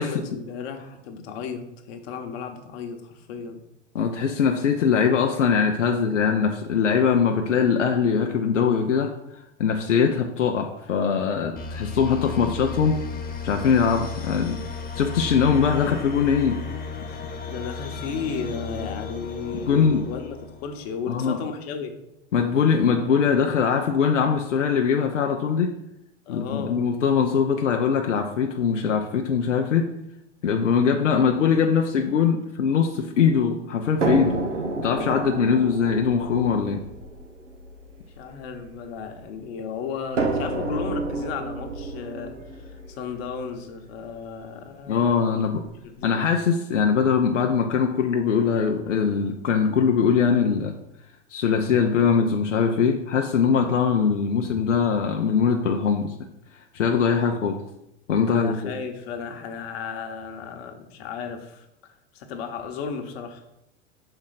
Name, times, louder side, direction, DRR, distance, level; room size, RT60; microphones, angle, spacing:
voice 1, 0.0-3.6 17.1-21.9 26.3-26.9 38.2-46.1 58.3-61.7 62.1-63.4, left 6 dB, 60° left, 5 dB, 1.0 m, -34 dB
voice 2, 3.9-13.0 13.4-14.6 14.9-16.6 19.7-20.0 21.1-21.4 22.3-25.7 26.3-29.9 30.4-34.4 34.8-36.8 44.9-45.6 46.0-50.7 51.3-56.1 56.7-57.6 58.1-58.7, left 6 dB, 85° left, 3 dB, 0.6 m, -22 dB
sound 1, 11.6-21.0, left 5 dB, 25° left, 1.0 m, -34 dB
sound 2, 34.0-39.2 40.2-44.1 45.1-45.2 45.6-45.7, right 3 dB, 85° right, 1.0 m, -30 dB
6.1 x 4.4 x 4.0 m, 0.83 s
figure-of-eight pair, 85°, 36 cm